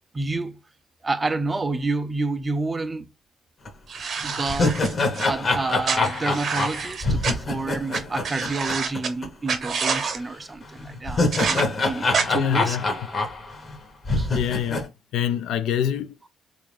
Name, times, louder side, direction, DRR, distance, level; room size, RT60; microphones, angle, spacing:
voice 1, 0.1-0.6 1.0-3.1 4.2-4.8 5.2-12.8 14.2-14.3, right 3 dB, 25° right, 0.4 m, -29 dB
sound 1, 3.7-3.8 4.2-9.3 9.5-9.6 10.8-13.8 14.0-14.9, left 2 dB, 40° left, 1.0 m, -25 dB
sound 2, 3.9-5.3 5.8-7.3 7.9-9.1 9.5-10.2 11.3-11.6 12.1-12.2, right 5 dB, 55° right, 0.8 m, -27 dB
voice 2, 12.3-12.8 14.3-16.3, left 9 dB, 85° left, 0.3 m, -26 dB
3.4 x 2.5 x 3.2 m
cardioid pair, 90°, 0 cm